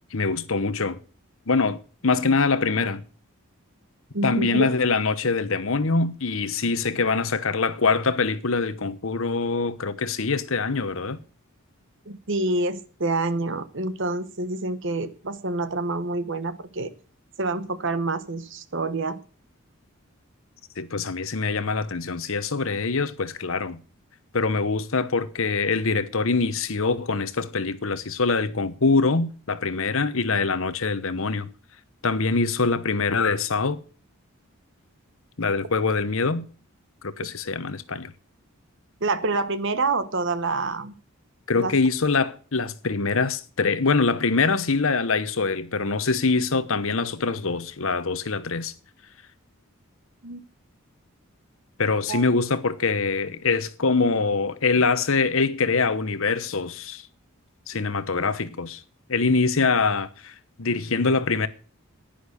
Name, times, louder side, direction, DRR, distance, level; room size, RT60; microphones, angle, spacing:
voice 1, 0.1-1.0 1.5-3.0 4.2-11.2 20.8-23.8 24.3-31.5 32.0-33.8 35.4-36.5 37.0-38.1 41.5-48.7 51.8-57.1 57.7-58.8 59.1-61.5, left 4 dB, 65° left, 1.0 m, -24 dB
voice 2, 4.1-4.7 12.1-16.9 17.4-19.2 39.0-41.0 41.5-41.8 50.2-50.5 52.1-52.3, right 3 dB, 55° right, 1.1 m, -27 dB
10.5 x 10.5 x 6.5 m
head